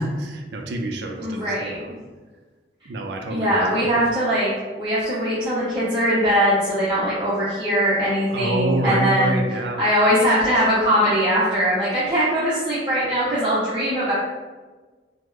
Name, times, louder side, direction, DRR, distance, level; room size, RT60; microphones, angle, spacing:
voice 1, 0.0-1.6 2.9-4.0 8.3-9.8, right 1 dB, 65° right, 3 dB, 0.4 m, -26 dB
voice 2, 1.2-1.8 3.3-4.5 4.8-9.4 9.8-14.1, equal, 25° right, -12 dB, 0.7 m, -21 dB
3.0 x 2.1 x 3.5 m, 1.3 s
head